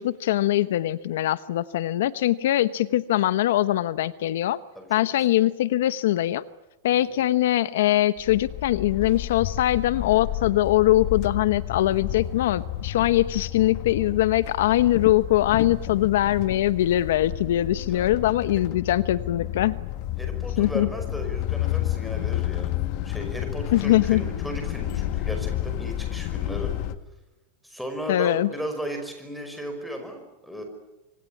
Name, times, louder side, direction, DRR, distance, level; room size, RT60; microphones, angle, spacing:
voice 1, 0.0-4.6 4.9-6.4 6.8-19.8 20.6-20.9 23.7-24.2 28.1-28.5, left 14 dB, 70° left, 15 dB, 1.0 m, -22 dB
sound 1, 8.2-27.0, left 12 dB, 40° left, 1.5 m, -31 dB
voice 2, 20.2-22.7 23.0-26.7 27.6-30.6, equal, ahead, 4 dB, 5.3 m, -35 dB
26.0 x 25.0 x 8.8 m, 1.0 s
supercardioid pair, 170°, 0 cm